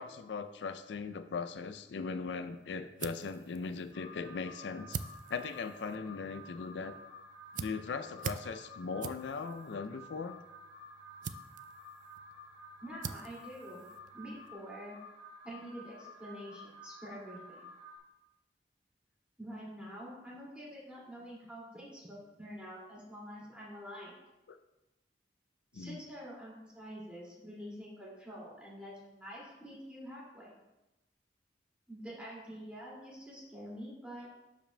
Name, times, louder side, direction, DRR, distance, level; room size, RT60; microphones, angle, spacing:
voice 1, 0.0-5.0 5.3-6.9 7.6-10.4 24.5-24.6 25.7-26.0, left 5 dB, 80° left, 9 dB, 0.4 m, -39 dB
sound 1, 2.4-14.5, right 6 dB, 45° right, 0.3 m, -47 dB
Alarm, 3.9-18.0, left 1 dB, 65° right, 1.4 m, -52 dB
voice 2, 12.8-13.8 14.1-15.0 15.4-17.7 19.4-24.1 25.7-30.6 31.9-34.3, equal, 5° right, -6 dB, 2.2 m, -47 dB
12.0 x 5.0 x 2.2 m, 0.97 s
head